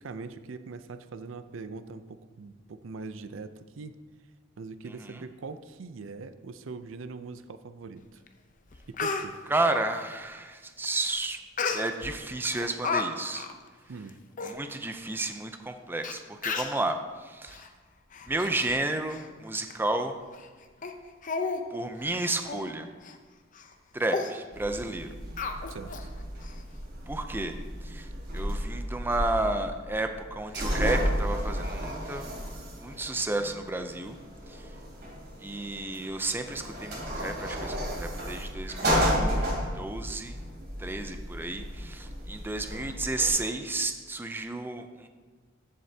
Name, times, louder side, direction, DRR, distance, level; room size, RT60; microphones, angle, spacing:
voice 1, 0.0-3.9 4.6-8.2 8.9-9.4 13.9-14.2 25.7-26.1, right 4 dB, 80° right, 11 dB, 0.5 m, -42 dB
Speech, 8.3-8.4 8.7-9.3 11.6-12.1 12.5-13.0 13.4-13.5 14.1-14.2 14.4-14.5 15.3-15.4 16.0-16.1 16.4-16.8 17.5-17.7 18.1-18.8 19.1-19.3 19.7-19.8 20.3-20.5 20.8-20.9 21.2-21.6 21.9-22.1 22.5-22.7 23.0-23.2 23.5-23.7 24.1-24.3 25.4-26.0 26.4-26.5, left 4 dB, 40° left, 0.7 m, -32 dB
voice 2, 9.5-11.4 11.7-13.5 14.4-17.6 18.3-20.2 21.7-22.9 23.9-25.1 27.1-27.6 27.8-28.1 28.3-32.3 32.8-34.2 34.5-34.7 35.4-39.1 39.7-40.4 40.8-45.1, right 2 dB, 10° right, 6 dB, 0.5 m, -31 dB
sound 1, 24.5-43.3, equal, 55° right, 3.2 m, -33 dB
14.0 x 7.7 x 2.8 m, 1.4 s
head